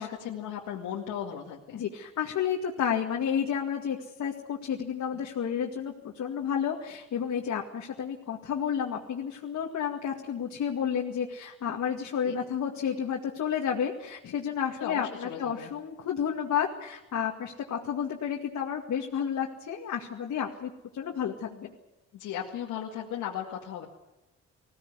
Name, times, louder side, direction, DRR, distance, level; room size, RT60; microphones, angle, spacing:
voice 1, 0.0-1.8 12.2-12.4 14.8-15.7 22.1-23.9, left 9 dB, 85° left, -1 dB, 2.1 m, -36 dB
voice 2, 1.7-21.7, left 8 dB, 65° left, 0 dB, 2.2 m, -31 dB
20.5 x 16.5 x 9.6 m, 0.99 s
cardioid pair, 90°, 30 cm